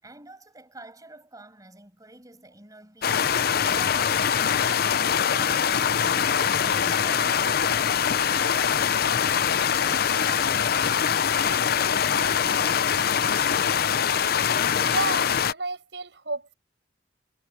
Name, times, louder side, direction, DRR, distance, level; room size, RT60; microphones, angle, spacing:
voice 1, 0.0-4.3 4.5-11.0 11.4-13.7, right 2 dB, 20° right, 6.9 m, -48 dB
sound 1, 3.0-15.5, left 7 dB, 60° left, 0.6 m, -23 dB
voice 2, 14.8-16.5, right 3 dB, 75° right, 7.2 m, -32 dB
head